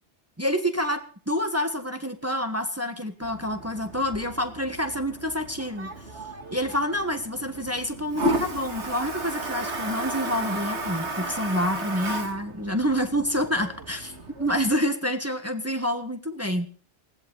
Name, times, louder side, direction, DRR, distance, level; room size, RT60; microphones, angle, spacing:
voice 1, 0.4-6.0 6.5-16.7, equal, 15° right, 6 dB, 1.6 m, -28 dB
Toilet flush, 3.2-14.7, right 1 dB, 80° right, 2.5 m, -34 dB
20.0 x 16.5 x 4.0 m, 0.43 s
omnidirectional pair, 1.1 m